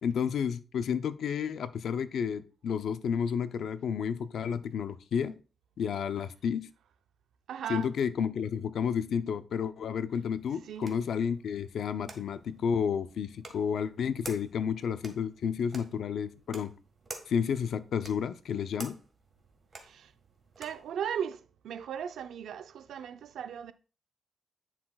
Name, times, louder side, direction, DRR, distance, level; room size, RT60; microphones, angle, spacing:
voice 1, 0.0-5.4 5.8-6.7 7.7-16.7 17.3-19.0, left 7 dB, 70° left, 0.5 m, -31 dB
voice 2, 7.5-7.9 10.6-10.9 19.8-20.1 20.6-23.7, right 8 dB, 80° right, 0.5 m, -37 dB
sound 1, 10.2-20.9, right 3 dB, 30° right, 1.6 m, -50 dB
9.9 x 5.8 x 2.3 m
cardioid pair, 100°, 0 cm